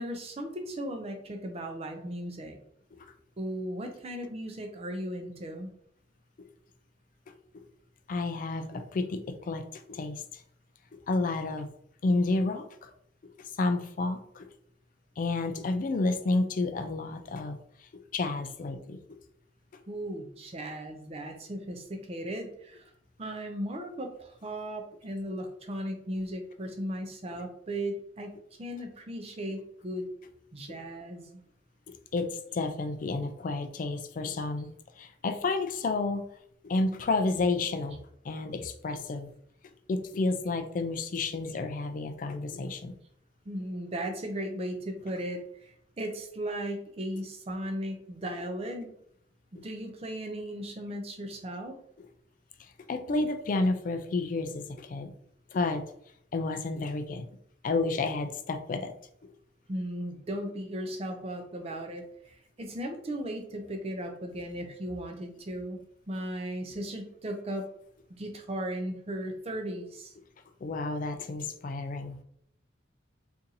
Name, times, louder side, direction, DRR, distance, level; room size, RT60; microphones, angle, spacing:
voice 1, 0.0-2.6 3.4-5.7 19.9-22.9 23.2-30.0 30.5-31.4 43.5-48.9 49.5-51.8 59.7-65.8 66.1-67.7 68.1-70.1, right 1 dB, 35° right, 4 dB, 0.5 m, -36 dB
voice 2, 8.1-10.2 11.1-11.7 12.0-12.9 13.6-14.5 15.2-17.6 18.1-19.0 32.1-34.7 35.0-36.2 36.6-38.0 38.3-39.3 39.9-42.9 52.9-55.1 55.5-55.8 56.3-57.3 57.6-58.9 70.6-72.2, left 3 dB, 45° left, 7 dB, 0.3 m, -30 dB
2.8 x 2.6 x 3.8 m, 0.71 s
head